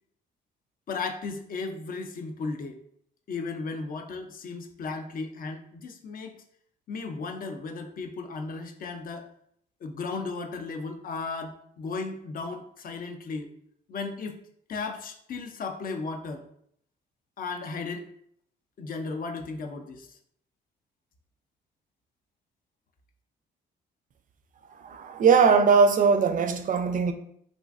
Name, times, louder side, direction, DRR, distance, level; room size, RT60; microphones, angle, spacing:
voice 1, 0.9-2.8 3.3-6.4 6.9-9.3 9.8-13.5 13.9-14.4 14.7-16.4 17.4-18.1 18.8-20.2, left 4 dB, 45° left, 0.4 m, -35 dB
voice 2, 24.8-27.1, right 5 dB, 45° right, 0.4 m, -20 dB
3.0 x 2.5 x 2.4 m
cardioid pair, 90°, 20 cm